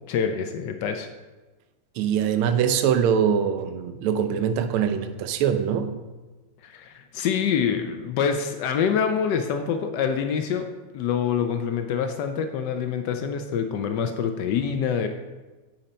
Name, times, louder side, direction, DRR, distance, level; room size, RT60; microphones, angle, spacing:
voice 1, 0.1-1.1 6.6-10.7 10.9-15.1, left 7 dB, 75° left, 7 dB, 1.0 m, -26 dB
voice 2, 2.0-5.9, right 8 dB, 85° right, 9 dB, 1.5 m, -23 dB
7.7 x 4.2 x 5.1 m, 1.2 s
omnidirectional pair, 2.3 m